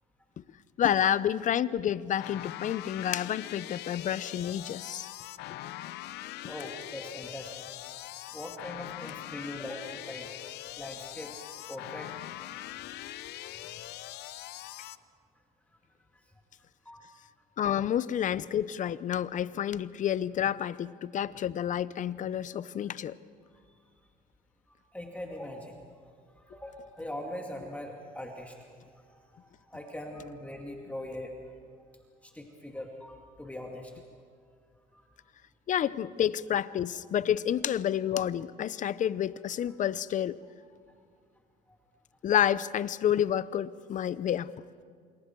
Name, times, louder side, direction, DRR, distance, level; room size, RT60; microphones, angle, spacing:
voice 1, 0.8-5.1 17.6-23.1 35.7-40.4 42.2-44.5, left 10 dB, 50° left, 0.7 m, -29 dB
sound 1, 2.2-15.0, left 15 dB, 80° left, 0.7 m, -42 dB
voice 2, 6.5-7.7 8.3-10.3 10.7-11.4 11.6-13.0 13.3-13.7 16.8-17.1 24.7-25.8 26.5-28.6 29.1-31.3 32.2-33.9 34.9-35.0 40.4-40.5 41.7-41.8 44.2-44.3, left 1 dB, 10° left, 2.3 m, -42 dB
28.0 x 26.5 x 4.6 m
cardioid pair, 110°, 17 cm